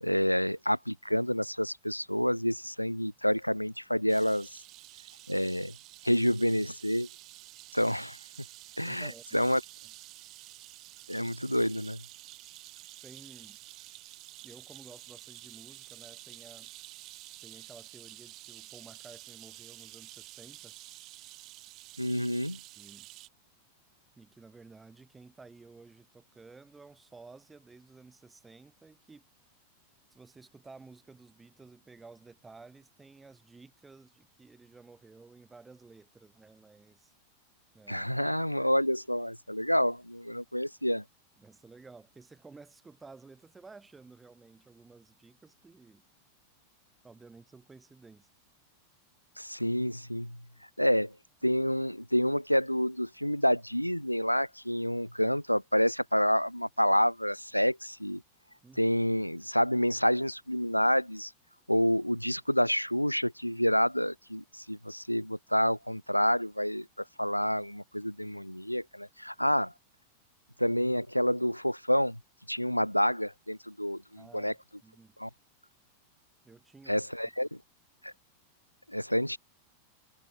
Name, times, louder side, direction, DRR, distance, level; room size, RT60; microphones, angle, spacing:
voice 1, 0.0-4.6 5.3-5.7 6.0-7.1 7.7-8.2 8.8-9.6 11.1-12.0 22.0-22.6 37.9-41.0 49.4-50.4 50.8-51.1 51.4-58.2 58.8-61.3 61.7-66.9 67.2-69.7 70.6-72.2 72.5-74.5 75.2-75.3 76.9-77.5 78.0-78.1 78.9-79.4, equal, 90° left, 0.8 m, -28 dB
sound 1, 4.1-23.3, right 19 dB, 40° right, 1.5 m, -50 dB
voice 2, 8.9-9.5 13.0-13.6 14.4-16.7 17.4-20.7 22.8-23.1 24.2-29.2 30.1-37.1 37.7-38.1 41.4-46.0 47.0-48.3 58.6-58.9 74.2-74.6 74.8-75.2 76.4-77.0, right 4 dB, 10° right, 4.5 m, -53 dB
figure-of-eight pair, 90°, 0 cm